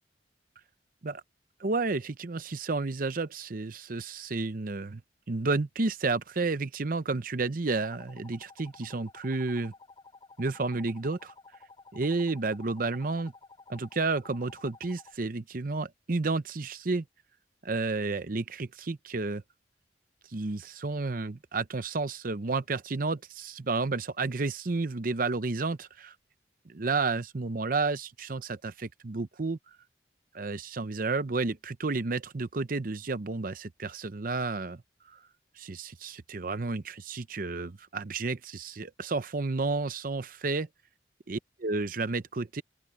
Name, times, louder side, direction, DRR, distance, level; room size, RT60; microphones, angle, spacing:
voice 1, 1.6-5.0 5.3-9.7 10.4-11.3 11.9-13.3 13.7-17.0 17.6-19.4 20.3-26.1 26.7-29.6 30.3-34.8 35.1-35.2 35.6-40.7 41.3-42.6, right 3 dB, 50° right, 0.7 m, -31 dB
sound 1, 7.7-15.2, left 4 dB, 25° left, 6.7 m, -53 dB
open air
head